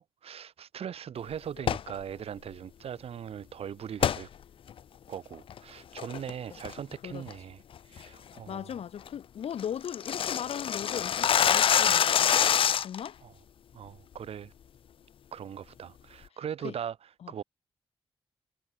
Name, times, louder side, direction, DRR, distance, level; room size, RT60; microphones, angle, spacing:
voice 1, 0.0-4.3 5.1-7.6 7.9-8.6 13.2-13.3 13.7-14.5 15.3-16.9 17.3-17.4, right 8 dB, 75° right, 3.6 m, -40 dB
sound 1, 1.6-1.9 4.0-4.2 4.7-4.8 5.3-5.6 6.0-6.3 6.6-6.9 7.3-7.4 7.8-8.0 8.4-8.5 8.8-8.9 9.1-9.2 9.4-13.1, left 9 dB, 60° left, 0.6 m, -25 dB
voice 2, 8.5-12.6 12.8-13.2 16.6-16.7 17.2-17.3, left 9 dB, 85° left, 3.6 m, -38 dB
wide cardioid pair, 170°, 10 cm